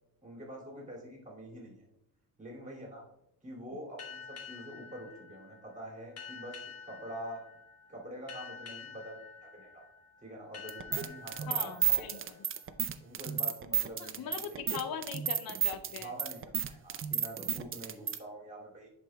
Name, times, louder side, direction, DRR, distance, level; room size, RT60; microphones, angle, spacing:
voice 1, 0.2-1.8 2.4-3.0 3.4-7.4 7.9-9.8 10.2-12.2 13.0-15.0 16.0-18.9, right 1 dB, 20° right, -2 dB, 2.5 m, -46 dB
sound 1, 4.0-13.3, left 6 dB, 40° left, 1.1 m, -49 dB
sound 2, 10.7-18.2, right 8 dB, 35° right, 0.5 m, -32 dB
voice 2, 11.5-12.2 14.2-16.1, left 7 dB, 65° left, 9 dB, 0.6 m, -40 dB
10.5 x 5.0 x 2.2 m, 0.81 s
cardioid pair, 125°, 39 cm